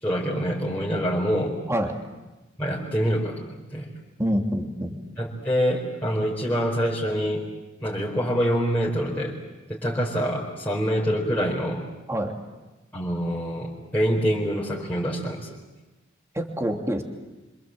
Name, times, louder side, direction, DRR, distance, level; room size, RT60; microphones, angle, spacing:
voice 1, 0.0-1.6 2.6-3.4 3.7-3.9 5.2-7.4 7.8-9.4 9.7-11.8 12.9-15.5, equal, 10° left, -5 dB, 4.3 m, -25 dB
voice 2, 4.2-5.0 12.1-12.4 16.3-17.0, equal, 15° right, 2 dB, 2.9 m, -26 dB
27.0 x 27.0 x 7.7 m, 1.1 s
head